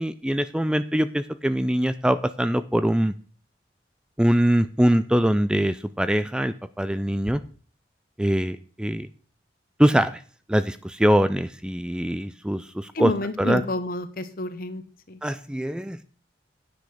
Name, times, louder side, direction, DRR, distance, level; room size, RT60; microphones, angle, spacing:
voice 1, 0.0-3.1 4.2-7.4 8.2-9.1 9.8-10.2 10.5-13.1 13.4-13.6 15.2-16.0, equal, 5° right, 12 dB, 0.4 m, -23 dB
voice 2, 12.9-14.8 15.1-15.2, left 2 dB, 55° left, 12 dB, 1.0 m, -29 dB
9.6 x 8.4 x 5.0 m, 0.41 s
head